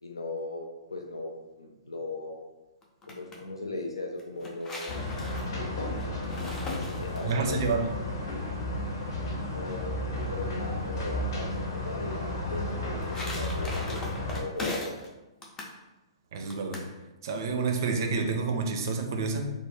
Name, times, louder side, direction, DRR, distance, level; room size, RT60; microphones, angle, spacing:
voice 1, 0.0-2.5 3.1-5.0 6.7-7.6 9.5-9.9 10.3-12.6 13.1-15.0, left 2 dB, 80° left, 1 dB, 0.3 m, -38 dB
sound 1, 2.8-3.4 4.2-7.5 12.6-15.1 15.4-15.8 16.5-16.9, left 2 dB, 15° left, 0.4 m, -39 dB
sound 2, 4.9-14.4, left 1 dB, 50° left, 0.8 m, -33 dB
voice 2, 7.2-7.9 16.3-16.8 17.2-19.5, right 4 dB, 50° right, 4 dB, 0.4 m, -29 dB
2.3 x 2.1 x 3.5 m, 1.1 s
figure-of-eight pair, 115°, 3 cm